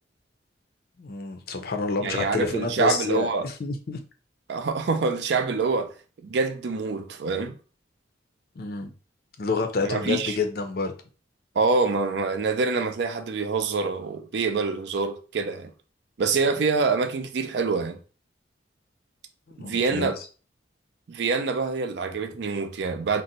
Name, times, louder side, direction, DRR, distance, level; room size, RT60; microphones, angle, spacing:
voice 1, 1.0-4.0 8.6-8.9 9.4-10.9 19.5-20.1, left 4 dB, 55° left, 0.5 m, -28 dB
voice 2, 2.0-3.5 4.5-5.9 6.2-7.6 9.8-10.4 11.6-15.7 16.2-18.0 19.6-20.2 21.1-23.2, right 4 dB, 60° right, 0.4 m, -26 dB
2.6 x 2.0 x 3.9 m
head